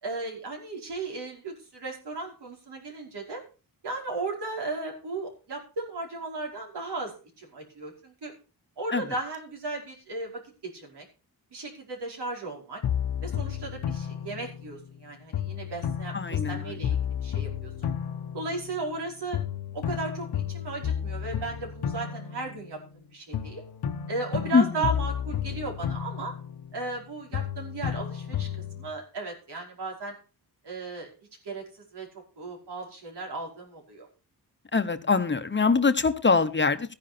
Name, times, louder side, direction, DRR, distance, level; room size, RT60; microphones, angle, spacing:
voice 1, 0.0-3.4 3.8-8.3 8.8-11.1 11.5-12.8 13.2-17.9 18.3-19.4 19.7-23.6 24.1-26.3 26.7-30.2 30.6-31.1 31.4-32.1 32.4-34.1, right 3 dB, 90° right, 0 dB, 5.1 m, -36 dB
sound 1, 12.8-15.0 15.3-19.0 19.3-23.0 23.3-27.0 27.3-28.9, left 9 dB, 70° left, 1.0 m, -32 dB
voice 2, 16.1-16.7 24.5-24.8 34.7-36.9, left 4 dB, 30° left, 9 dB, 1.0 m, -23 dB
14.0 x 10.5 x 4.3 m, 0.35 s
wide cardioid pair, 125°, 39 cm